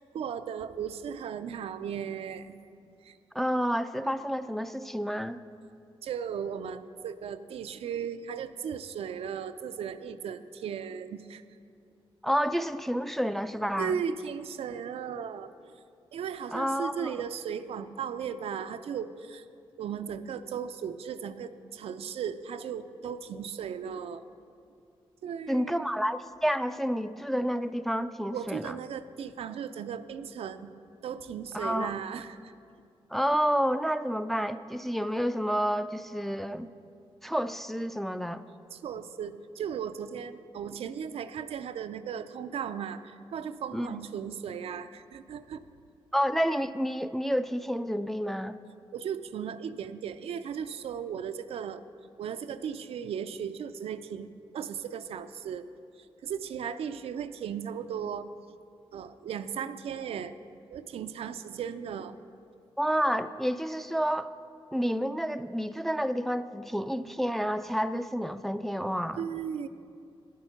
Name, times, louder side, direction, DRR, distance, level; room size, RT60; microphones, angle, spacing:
voice 1, 0.0-2.6 3.0-3.2 6.0-11.4 13.8-15.7 16.1-19.5 19.8-24.2 25.2-25.9 28.3-30.7 31.0-32.5 38.7-45.6 48.9-51.8 52.2-55.7 56.0-58.3 58.9-60.3 60.7-62.2 69.2-69.7, right 7 dB, 80° right, 10 dB, 0.4 m, -36 dB
voice 2, 3.3-5.4 12.2-14.0 16.5-17.1 25.5-28.7 31.5-31.9 33.1-36.7 37.2-38.4 43.7-44.0 46.1-48.6 62.8-64.3 64.7-69.2, equal, 5° left, 10 dB, 0.3 m, -29 dB
9.8 x 8.5 x 5.8 m, 2.4 s
cardioid pair, 70°, 10 cm